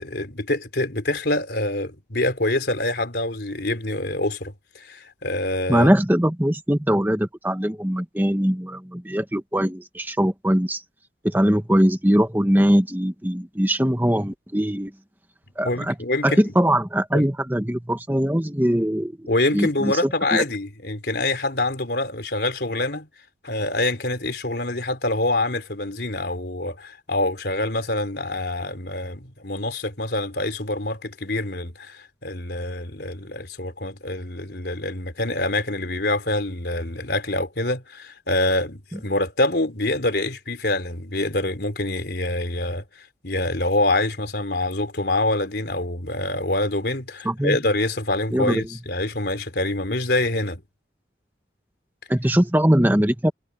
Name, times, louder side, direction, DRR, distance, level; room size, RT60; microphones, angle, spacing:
voice 1, 0.0-5.9 15.6-16.5 17.1-17.3 19.3-23.1 23.4-50.6, left 2 dB, 65° left, 3.5 m, -25 dB
voice 2, 5.7-10.8 11.2-14.9 15.6-15.9 16.2-20.4 47.2-47.6 48.3-48.7 52.1-53.3, equal, 10° right, 1.4 m, -21 dB
head